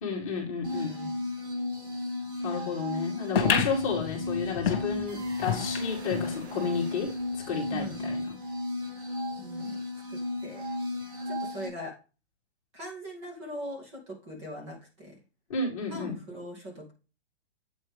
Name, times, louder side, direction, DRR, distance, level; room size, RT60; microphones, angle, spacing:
voice 1, 0.0-0.9 2.4-7.1 7.5-8.4 15.5-16.2, left 5 dB, 30° left, -2 dB, 2.2 m, -32 dB
sound 1, 0.6-11.7, left 2 dB, 50° right, 5.2 m, -34 dB
voice 2, 0.7-1.3 7.7-8.1 9.4-9.8 10.1-10.6 11.3-11.9 12.7-15.2 15.9-16.9, equal, 25° right, -1 dB, 2.6 m, -41 dB
sound 2, 3.3-6.3 6.7-6.8 7.0-7.1 7.9-8.0, left 8 dB, 55° left, 2.0 m, -30 dB
sound 3, 5.1-8.2, right 3 dB, 80° right, 3.2 m, -49 dB
8.6 x 5.7 x 3.5 m, 0.32 s
hypercardioid pair, 175°, 33 cm